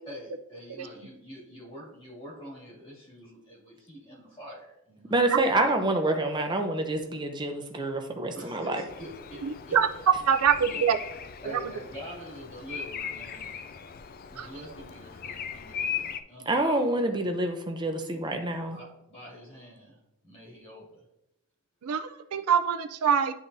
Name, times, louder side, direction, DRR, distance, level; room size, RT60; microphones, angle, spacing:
voice 1, 0.0-5.5 8.3-9.8 10.6-10.8 11.4-13.5 14.3-17.0 18.7-20.0 20.2-21.0, equal, 25° left, -5 dB, 2.4 m, -45 dB
voice 2, 5.1-8.8 16.5-18.8, right 2 dB, 20° right, 4 dB, 0.6 m, -27 dB
Bird vocalization bird call bird song, 8.9-16.2, left 7 dB, 40° left, 0.3 m, -38 dB
voice 3, 9.4-9.9 10.2-11.0 11.5-11.6 14.4-14.5 21.8-23.3, right 7 dB, 90° right, 9 dB, 0.5 m, -25 dB
10.5 x 3.7 x 2.7 m, 0.86 s
head